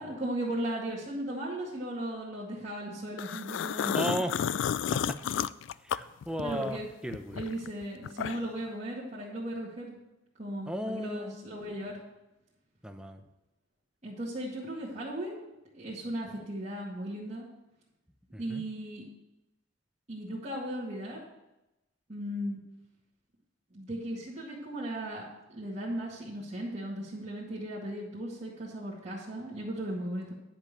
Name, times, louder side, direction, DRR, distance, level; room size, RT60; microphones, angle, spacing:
voice 1, 0.0-4.3 6.4-6.9 7.3-10.0 10.4-12.0 14.0-17.5 18.4-19.0 20.1-21.2 22.1-22.6 23.7-30.3, right 1 dB, 35° right, -8 dB, 1.9 m, -37 dB
sound 1, 3.2-6.7 7.1-8.6, left 8 dB, 75° left, 0.3 m, -32 dB
voice 2, 3.9-4.3 4.6-5.2 5.8-7.5 10.7-11.3 12.8-13.2 18.3-18.6, equal, 5° right, 6 dB, 0.7 m, -35 dB
10.5 x 5.1 x 7.4 m, 0.94 s
head